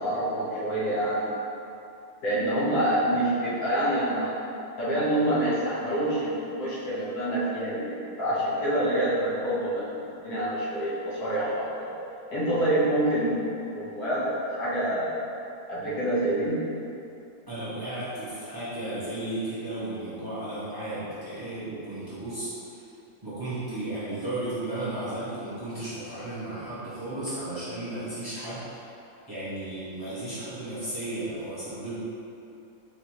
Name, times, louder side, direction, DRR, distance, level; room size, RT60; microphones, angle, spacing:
voice 1, 0.0-1.3 2.2-4.3 4.8-11.9 12.3-15.1 15.7-16.6, right 1 dB, 70° left, -9 dB, 1.6 m, -27 dB
voice 2, 17.5-22.8 23.2-28.8 29.3-32.0, right 1 dB, 15° right, -13 dB, 1.1 m, -34 dB
4.8 x 3.4 x 3.0 m, 2.8 s
omnidirectional pair, 1.7 m